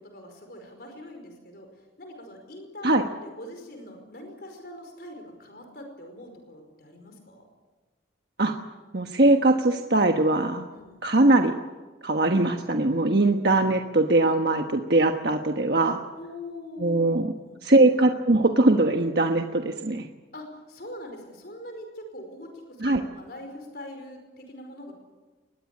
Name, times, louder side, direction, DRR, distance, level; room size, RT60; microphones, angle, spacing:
voice 1, 0.0-1.7 2.0-7.4 10.7-11.0 16.1-17.1 17.4-17.6 20.3-24.9, left 1 dB, 55° left, 4 dB, 5.1 m, -42 dB
voice 2, 8.9-10.6 11.0-11.5 12.0-16.0 16.8-17.3 17.6-20.1 22.8-23.0, right 2 dB, 60° right, 4 dB, 1.3 m, -21 dB
23.0 x 19.5 x 8.5 m, 1.3 s
head